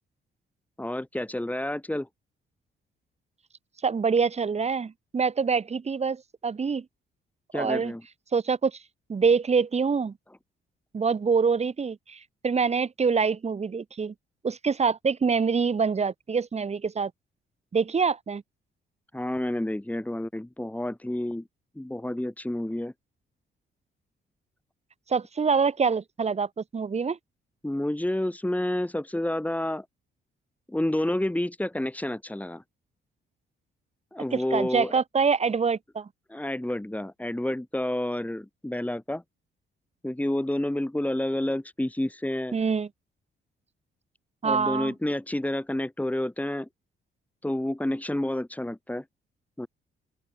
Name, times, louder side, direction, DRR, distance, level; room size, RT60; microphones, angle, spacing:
voice 1, 0.8-2.1 7.5-8.0 19.1-21.4 21.7-22.9 27.6-29.8 30.7-32.6 34.1-35.0 36.3-39.2 40.0-42.6 44.4-46.7 47.4-49.0 49.6-49.7, left 1 dB, 5° left, 5.1 m, -29 dB
voice 2, 3.8-6.8 7.5-7.9 8.3-8.8 9.1-10.1 10.9-14.1 14.4-17.1 17.7-18.4 25.1-27.2 34.3-36.1 42.5-42.9 44.4-44.9, right 5 dB, 30° right, 1.1 m, -25 dB
open air
cardioid pair, 85°, 20 cm